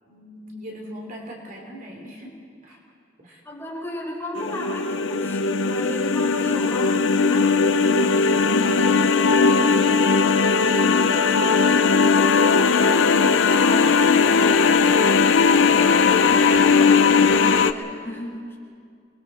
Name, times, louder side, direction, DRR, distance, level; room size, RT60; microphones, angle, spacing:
voice 1, 0.1-2.3 2.6-2.8 3.2-3.4 8.4-10.8, equal, 45° right, -1 dB, 3.3 m, -36 dB
voice 2, 3.4-7.5 13.4-18.4, left 1 dB, 15° left, -4 dB, 5.7 m, -35 dB
sound 1, 4.4-17.7, left 5 dB, 75° left, 0.7 m, -18 dB
30.0 x 21.5 x 4.3 m, 2.3 s
head